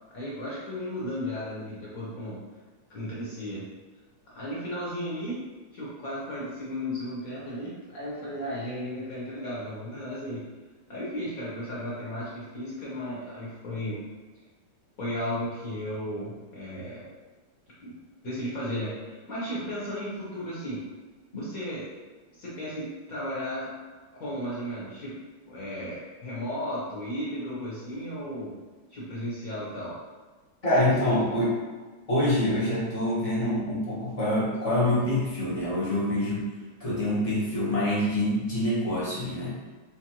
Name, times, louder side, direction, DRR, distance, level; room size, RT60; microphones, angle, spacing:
voice 1, 0.1-2.4 2.9-3.6 4.2-5.4 5.7-10.4 10.9-14.0 15.0-17.1 17.8-17.9 18.2-20.8 21.3-21.9 22.3-23.7 24.1-25.2 25.5-28.5 28.9-30.0 30.8-31.3, equal, 60° left, -7 dB, 1.0 m, -34 dB
voice 2, 30.6-31.5 32.1-36.4 36.8-39.6, left 1 dB, 40° left, -9 dB, 0.5 m, -26 dB
4.5 x 2.5 x 2.9 m, 1.3 s
omnidirectional pair, 2.4 m